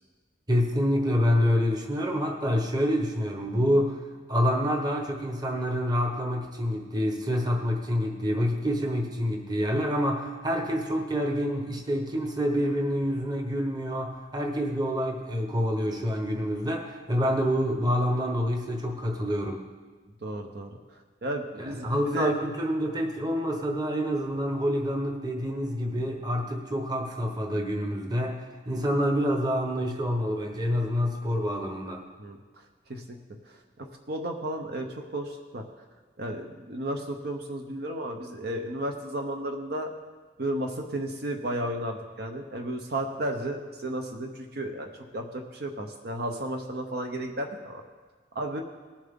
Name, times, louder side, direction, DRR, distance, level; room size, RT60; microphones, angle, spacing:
voice 1, 0.5-4.0 4.3-19.6 21.6-28.4 28.7-32.0, equal, 25° right, 2 dB, 1.2 m, -27 dB
voice 2, 20.2-20.8 21.2-22.3 32.2-32.4 32.9-33.2 33.8-35.6 36.2-39.9 40.4-47.8 48.3-48.6, right 1 dB, 60° right, 3 dB, 0.8 m, -33 dB
19.0 x 7.3 x 3.7 m, 1.4 s
head